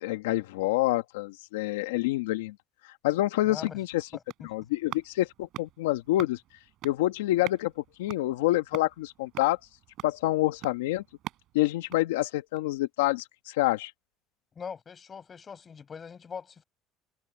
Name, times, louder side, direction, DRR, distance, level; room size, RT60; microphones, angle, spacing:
voice 1, 0.0-2.5 3.0-4.1 4.4-6.4 6.8-7.7 8.0-9.6 10.0-11.0 11.5-13.9, left 16 dB, 90° left, 1.3 m, -27 dB
sound 1, 3.3-12.8 13.2-13.3, right 15 dB, 65° right, 6.1 m, -46 dB
voice 2, 3.5-3.8 4.1-4.5 14.6-16.6, left 6 dB, 35° left, 5.3 m, -42 dB
supercardioid pair, 80°, 0 cm